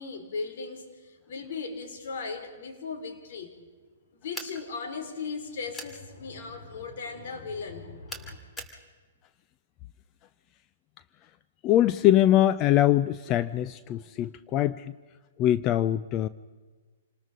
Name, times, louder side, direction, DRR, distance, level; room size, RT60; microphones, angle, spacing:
voice 1, 0.0-3.5 4.2-8.4, left 4 dB, 60° left, 5 dB, 4.4 m, -37 dB
sound 1, 4.3-4.6 5.7-6.0 8.1-8.8, equal, 10° left, 2.5 m, -39 dB
voice 2, 11.6-14.9 15.4-16.3, left 12 dB, 30° left, 14 dB, 0.6 m, -23 dB
27.5 x 20.0 x 5.2 m, 1.4 s
hypercardioid pair, 120°, 0 cm